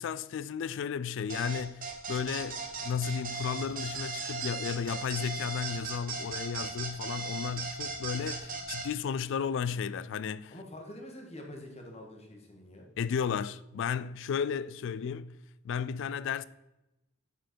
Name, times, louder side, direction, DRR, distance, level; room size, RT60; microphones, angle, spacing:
voice 1, 0.0-10.5 13.0-15.3 15.6-16.4, left 7 dB, 65° left, 0.3 m, -34 dB
sound 1, 1.3-8.9, right 4 dB, 45° right, 1.2 m, -37 dB
voice 2, 10.5-12.9, left 1 dB, 30° left, 1.5 m, -46 dB
9.2 x 4.5 x 4.5 m
head